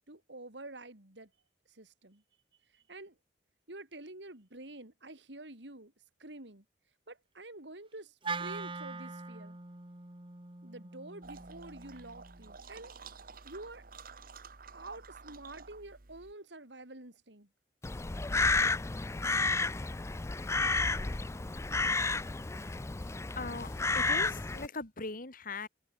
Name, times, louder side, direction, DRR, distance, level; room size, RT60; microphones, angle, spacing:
voice 1, 0.1-1.3 1.7-2.2 2.7-3.2 3.7-5.9 6.2-6.6 7.1-9.6 10.6-13.0 13.4-13.8 14.7-17.5, right 2 dB, 75° right, 3.9 m, -48 dB
Wind instrument woodwind instrument, 8.2-12.5, right 4 dB, 30° right, 1.8 m, -42 dB
sound 1, 11.2-16.3, right 4 dB, 55° right, 1.5 m, -51 dB
Crow, 17.8-24.7, left 3 dB, 15° left, 0.4 m, -31 dB
voice 2, 23.4-25.7, left 3 dB, 55° left, 2.9 m, -40 dB
head